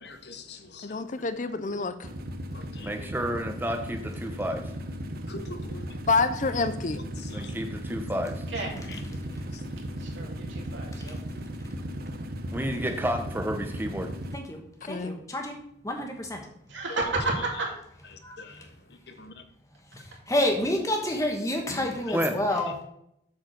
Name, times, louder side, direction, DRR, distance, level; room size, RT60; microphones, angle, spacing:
voice 1, 0.0-1.0 1.7-1.8 2.5-3.1 5.3-6.1 7.1-7.5 8.0-8.1 8.5-9.0 9.5-9.6 17.4-17.5 18.1-19.4 22.1-22.2, left 3 dB, 60° left, 7 dB, 1.0 m, -45 dB
voice 2, 0.8-2.0 6.1-7.0 14.8-15.2 21.7-21.9, left 4 dB, 45° left, 11 dB, 0.6 m, -27 dB
sound 1, 2.0-14.4, equal, 55° right, 0.8 m, -36 dB
voice 3, 2.8-4.6 7.3-8.4 12.5-14.1 22.1-22.4, equal, 10° right, 4 dB, 1.0 m, -30 dB
voice 4, 10.0-11.2 16.7-17.7, right 2 dB, 90° right, -1 dB, 2.8 m, -31 dB
voice 5, 14.9-16.4 18.2-18.4 19.9-22.8, left 1 dB, 15° left, 2 dB, 1.3 m, -29 dB
8.0 x 4.8 x 6.3 m, 0.75 s
head